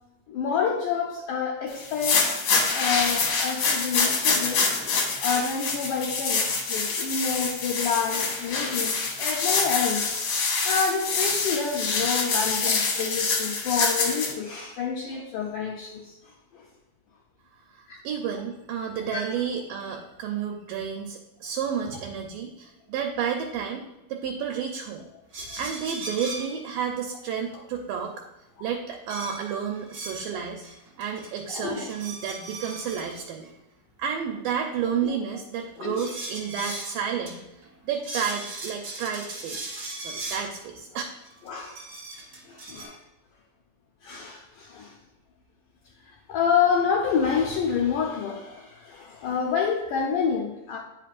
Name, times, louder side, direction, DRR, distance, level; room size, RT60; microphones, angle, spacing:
voice 1, 0.3-2.3 2.7-4.6 5.2-16.1 16.5-16.6 17.9-18.0 19.1-19.2 28.6-28.7 31.5-31.9 35.0-35.1 35.8-36.0 41.5-41.8 42.5-43.0 44.0-45.0 46.0-50.8, left 6 dB, 80° left, -1 dB, 1.8 m, -28 dB
sound 1, 1.8-14.3, left 4 dB, 65° left, 2.3 m, -26 dB
voice 2, 17.7-23.8 24.1-25.1 25.5-28.1 28.6-30.7 31.0-33.5 34.0-37.4 37.9-39.7 40.0-41.0, right 7 dB, 80° right, 2 dB, 2.0 m, -31 dB
sound 2, 25.3-26.5 29.1-30.3 30.6-31.4 31.7-33.2 35.9-36.9 37.2-37.3 37.6-37.7 38.0-40.5 41.2-42.8, right 2 dB, 55° right, 0.9 m, -38 dB
9.1 x 5.3 x 2.5 m, 0.93 s
omnidirectional pair, 4.4 m